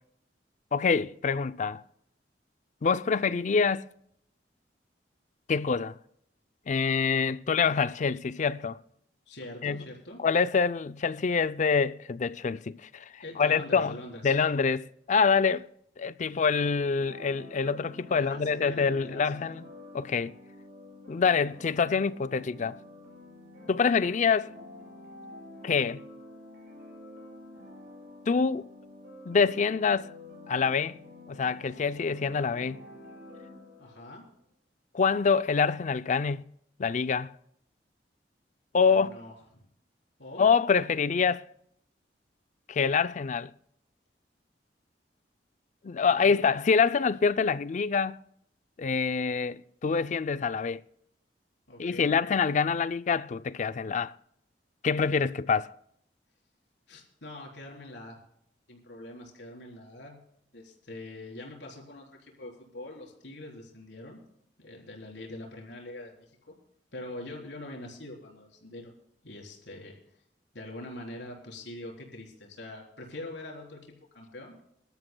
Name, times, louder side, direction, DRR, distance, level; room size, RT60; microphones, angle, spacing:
voice 1, 0.7-1.8 2.8-3.9 5.5-6.0 6.7-8.8 9.6-9.8 10.2-14.0 14.2-15.7 16.0-19.6 19.9-20.3 21.1-22.8 23.7-24.5 25.6-26.0 28.3-28.7 29.3-30.1 30.5-31.0 31.3-32.8 34.9-36.5 36.8-37.3 38.7-39.1 40.4-41.5 42.7-43.5 45.8-48.2 48.8-50.8 51.8-54.1 54.8-55.7, left 5 dB, 45° left, 0.4 m, -26 dB
voice 2, 9.3-10.2 13.2-14.3 18.1-19.6 33.8-34.2 38.9-39.6 40.2-40.5 46.1-46.4 51.7-52.2 56.9-58.2 58.7-60.2 60.5-64.2 64.6-66.5 66.9-68.9 69.2-70.0 70.5-74.6, left 1 dB, 85° left, 3.9 m, -44 dB
sound 1, 17.0-34.2, left 1 dB, 60° right, 6.8 m, -49 dB
23.0 x 13.0 x 2.2 m
head